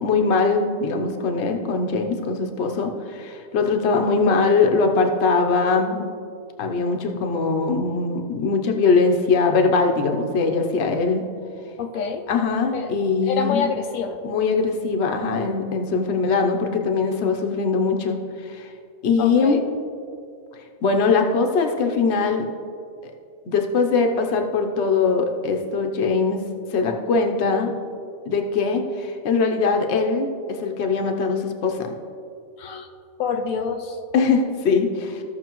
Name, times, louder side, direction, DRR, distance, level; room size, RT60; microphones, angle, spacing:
voice 1, 0.0-6.0 6.6-11.2 12.3-13.7 14.2-18.7 19.0-19.6 20.8-22.4 23.0-23.1 23.5-26.4 26.7-27.7 28.3-31.9 34.1-35.2, left 4 dB, 60° left, 3 dB, 1.0 m, -21 dB
voice 2, 11.8-12.2 12.7-12.9 13.2-14.2 19.2-19.6 32.6-32.9 33.2-34.0, left 6 dB, 85° left, 4 dB, 1.1 m, -26 dB
15.0 x 6.3 x 3.0 m, 2.3 s
omnidirectional pair, 1.4 m